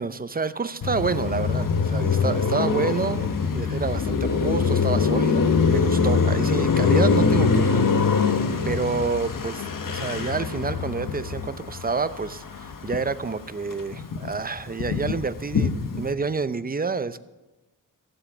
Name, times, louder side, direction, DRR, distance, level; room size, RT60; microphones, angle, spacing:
voice 1, 0.0-7.8 8.6-17.2, right 4 dB, 25° right, 13 dB, 0.6 m, -28 dB
Car passing by, 0.8-13.3 13.6-16.1, left 5 dB, 55° left, 1.3 m, -23 dB
15.5 x 7.6 x 7.2 m, 1.1 s
cardioid pair, 80°, 38 cm